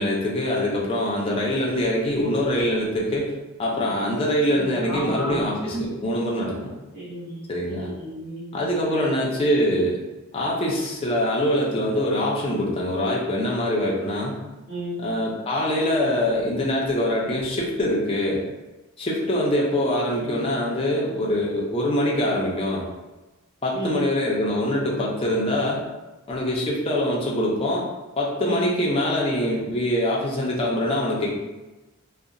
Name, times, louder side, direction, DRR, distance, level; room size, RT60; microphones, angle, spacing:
voice 1, 0.0-3.3 3.6-6.8 7.5-7.9 8.5-10.0 10.3-14.4 15.0-18.4 19.0-22.8 23.6-25.8 26.3-27.9 28.2-31.3, left 1 dB, 25° left, -3 dB, 0.4 m, -24 dB
voice 2, 4.5-5.8 6.9-8.4 8.9-9.3 14.7-15.0 20.2-20.5 23.7-24.0 28.4-28.7, right 1 dB, 40° right, -12 dB, 0.9 m, -33 dB
2.8 x 2.0 x 2.5 m, 1.1 s
head